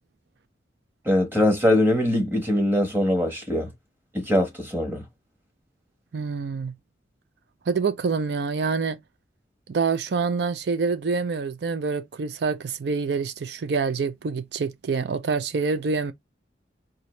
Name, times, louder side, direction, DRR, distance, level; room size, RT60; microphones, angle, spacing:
voice 1, 1.0-3.7 4.1-5.0, left 1 dB, 10° right, 1.2 m, -22 dB
voice 2, 6.1-6.7 7.7-9.0 9.7-16.1, right 4 dB, 70° right, 0.4 m, -26 dB
3.8 x 2.7 x 3.1 m
head